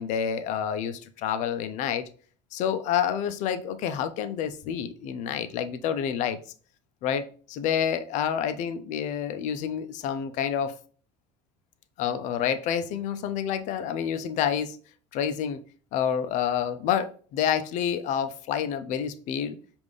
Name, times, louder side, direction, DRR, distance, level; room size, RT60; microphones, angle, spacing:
voice 1, 0.0-2.1 2.5-6.4 7.0-10.7 12.0-14.8 15.1-15.6 15.9-19.6, left 8 dB, 60° left, 10 dB, 0.5 m, -28 dB
5.1 x 2.5 x 3.3 m, 0.42 s
cardioid pair, 125°, 14 cm